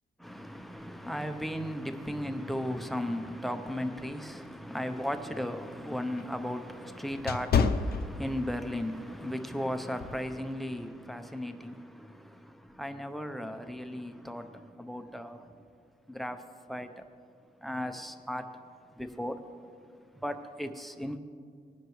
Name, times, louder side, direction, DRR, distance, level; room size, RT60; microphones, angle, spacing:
voice 1, 0.2-15.6 16.1-17.1 17.6-19.7 20.1-21.2, equal, ahead, 0.6 m, -36 dB
sound 1, 5.0-8.7 9.1-9.4 10.0-10.3, left 5 dB, 70° left, 0.6 m, -30 dB
20.0 x 10.5 x 3.1 m
wide cardioid pair, 150°, 17 cm